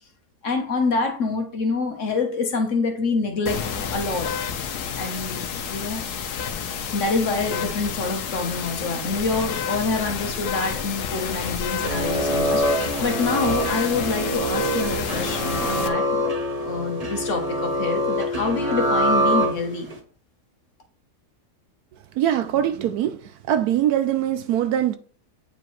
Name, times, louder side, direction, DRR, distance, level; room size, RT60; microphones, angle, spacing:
voice 1, 0.4-3.6 3.9-4.3 5.0-6.0 6.9-12.7 13.0-16.2 16.6-19.9, left 4 dB, 50° left, 1.2 m, -26 dB
sound 1, 3.5-15.9, left 7 dB, 70° left, 1.3 m, -30 dB
sound 2, 11.7-20.0, equal, 25° right, 0.9 m, -25 dB
voice 2, 22.2-23.2 23.5-25.0, right 11 dB, 70° right, 1.0 m, -22 dB
8.9 x 5.0 x 3.1 m
omnidirectional pair, 1.8 m